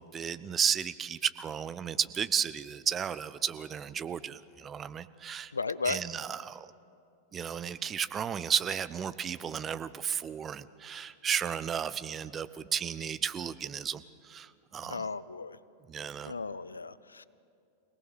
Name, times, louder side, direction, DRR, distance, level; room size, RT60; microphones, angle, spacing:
voice 1, 0.0-5.5 5.8-6.7 7.3-15.1 15.9-16.3, right 8 dB, 25° right, 14 dB, 0.7 m, -33 dB
voice 2, 5.5-6.0 14.9-15.6 16.3-17.3, left 4 dB, 75° left, 18 dB, 0.4 m, -35 dB
24.5 x 18.0 x 6.7 m, 2.5 s
figure-of-eight pair, 90°, 0 cm